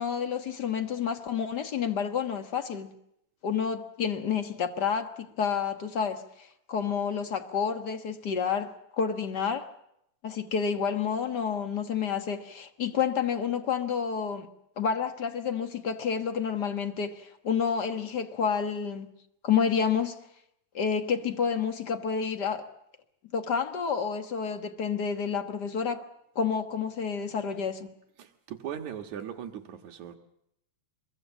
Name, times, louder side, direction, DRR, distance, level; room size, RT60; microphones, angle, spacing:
voice 1, 0.0-2.9 3.4-5.1 5.4-8.7 9.0-9.7 10.2-14.5 14.8-19.1 19.4-20.2 20.7-22.7 23.3-26.0 26.3-27.9, left 6 dB, 55° left, 1.1 m, -29 dB
voice 2, 28.2-30.2, right 9 dB, 65° right, 2.8 m, -39 dB
24.5 x 23.0 x 7.3 m
omnidirectional pair, 3.8 m